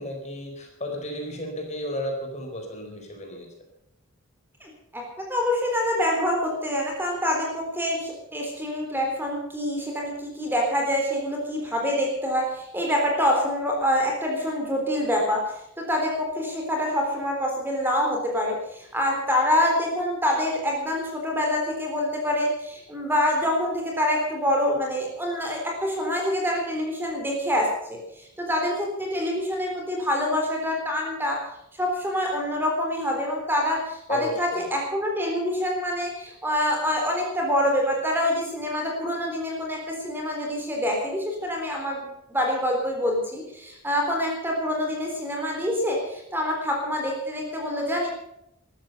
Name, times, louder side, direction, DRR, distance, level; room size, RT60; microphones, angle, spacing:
voice 1, 0.0-3.5 34.1-34.6, left 1 dB, 30° left, 2 dB, 4.5 m, -33 dB
voice 2, 4.6-5.0 5.3-31.4 31.7-48.1, left 1 dB, 10° right, 0 dB, 3.8 m, -26 dB
15.0 x 13.0 x 6.8 m, 0.77 s
head